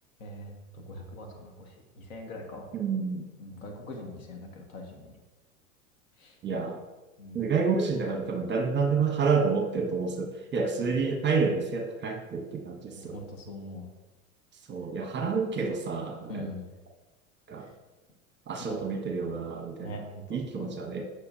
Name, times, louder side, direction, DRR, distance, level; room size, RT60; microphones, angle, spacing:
voice 1, 0.2-2.7 3.4-5.2 6.2-6.4 7.2-7.5 10.7-10.9 12.9-13.9 16.3-16.7 17.6-17.7 18.6-18.9 19.8-20.7, left 1 dB, 65° left, 2 dB, 1.6 m, -42 dB
voice 2, 2.7-3.3 6.4-6.8 7.3-13.2 14.7-16.5 17.5-17.7 18.5-20.0 20.3-21.0, right 5 dB, 25° right, 4 dB, 0.9 m, -29 dB
8.3 x 5.9 x 2.7 m, 1.1 s
hypercardioid pair, 85°, 43 cm